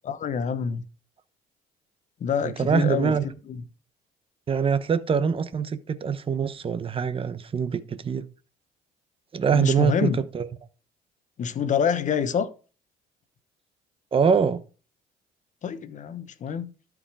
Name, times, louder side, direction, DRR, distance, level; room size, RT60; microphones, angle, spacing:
voice 1, 0.0-0.8 2.2-3.1 3.5-3.6 9.5-10.2 11.4-12.5 15.6-16.7, left 7 dB, 45° left, 1.1 m, -26 dB
voice 2, 2.4-3.3 4.5-8.2 9.3-10.5 14.1-14.6, right 6 dB, 30° right, 1.0 m, -24 dB
12.5 x 5.0 x 4.8 m
cardioid pair, 110°, 17 cm